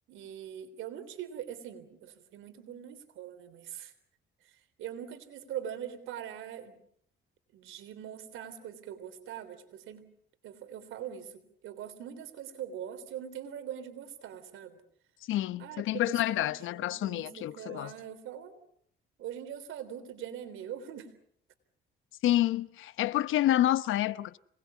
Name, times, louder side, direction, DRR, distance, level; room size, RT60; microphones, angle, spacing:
voice 1, 0.1-3.9 4.8-6.8 7.5-10.0 10.4-14.8 15.6-18.5 19.2-21.1, right 9 dB, 85° right, 3.3 m, -42 dB
voice 2, 15.3-17.9 22.2-24.4, left 14 dB, 85° left, 0.9 m, -28 dB
26.5 x 20.0 x 8.3 m
cardioid pair, 90°, 20 cm